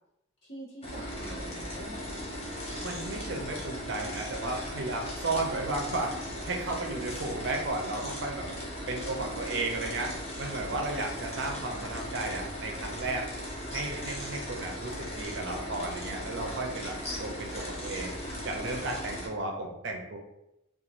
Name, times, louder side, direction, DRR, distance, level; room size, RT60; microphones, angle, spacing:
voice 1, 0.4-2.2 8.9-9.7, right 1 dB, 55° left, -7 dB, 1.1 m, -46 dB
sound 1, 0.8-19.3, equal, 30° left, 0.5 m, -38 dB
voice 2, 2.8-6.1 6.4-8.5 8.9-13.3 13.7-16.9 17.2-18.1 18.4-20.2, right 2 dB, 55° right, 2 dB, 0.4 m, -34 dB
2.9 x 2.3 x 2.4 m, 0.87 s
head